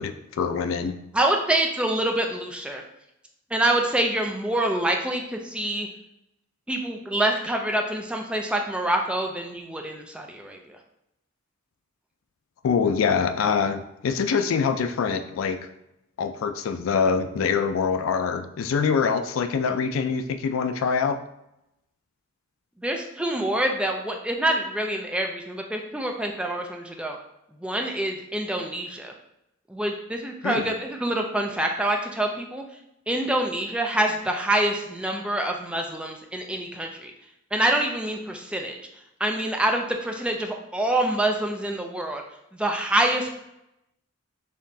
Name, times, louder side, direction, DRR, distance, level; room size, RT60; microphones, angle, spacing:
voice 1, 0.0-0.9 12.6-15.7 16.2-21.2 30.4-30.7, left 6 dB, 75° left, 9 dB, 0.3 m, -24 dB
voice 2, 1.1-2.8 3.5-5.9 6.7-10.8 22.8-27.2 27.6-29.1 29.7-32.6 33.1-37.1 37.5-38.8 39.2-42.2 42.5-43.3, right 1 dB, 5° right, 2 dB, 0.3 m, -26 dB
4.2 x 3.0 x 2.7 m, 0.83 s
head